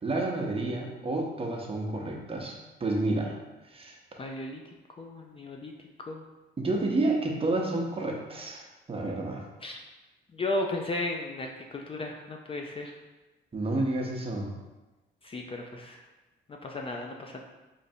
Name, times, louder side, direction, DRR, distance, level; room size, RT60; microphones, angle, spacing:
voice 1, 0.0-3.4 3.7-4.0 6.6-9.4 13.5-14.5, right 2 dB, 30° right, 0 dB, 0.7 m, -30 dB
voice 2, 4.2-4.6 5.0-5.7 6.1-6.2 9.6-9.8 10.3-12.9 15.2-16.0 16.6-17.4, left 2 dB, 30° left, 1 dB, 0.4 m, -34 dB
4.1 x 3.1 x 2.7 m, 1.1 s
cardioid pair, 90°, 20 cm